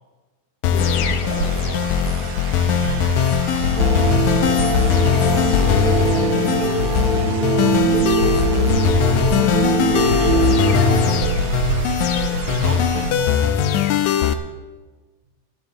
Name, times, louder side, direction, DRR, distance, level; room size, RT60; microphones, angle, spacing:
sound 1, 0.6-14.3, left 9 dB, 90° left, 1.7 m, -20 dB
voice 1, 0.7-1.9 5.6-7.7, left 2 dB, 45° left, -3 dB, 3.6 m, -34 dB
sound 2, 0.8-13.1, right 8 dB, 90° right, 1.8 m, -28 dB
voice 2, 2.6-3.2 9.7-10.7 11.9-12.2 12.5-14.4, right 3 dB, 70° right, 4 dB, 1.9 m, -32 dB
sound 3, 3.8-11.2, right 4 dB, 25° right, 1.0 m, -22 dB
19.0 x 11.5 x 3.9 m, 1.3 s
omnidirectional pair, 4.3 m